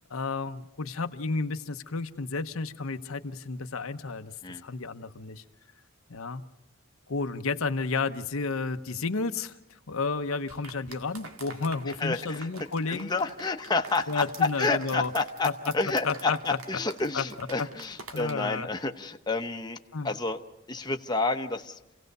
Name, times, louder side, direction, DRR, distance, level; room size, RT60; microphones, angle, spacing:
voice 1, 0.0-4.3 4.6-5.4 6.1-6.4 7.1-9.6 9.9-13.1 14.1-15.1 15.4-15.5 16.0-16.4 17.1-17.3 17.6-17.7 18.1-18.7 19.9-20.1, left 4 dB, 75° left, 8 dB, 0.9 m, -31 dB
sound 1, 10.5-18.3, right 3 dB, 90° right, 2.0 m, -47 dB
voice 2, 12.0-12.5 12.9-19.8 20.0-20.4 20.7-21.8, left 3 dB, 20° left, 5 dB, 0.8 m, -29 dB
28.0 x 17.0 x 6.7 m, 0.92 s
head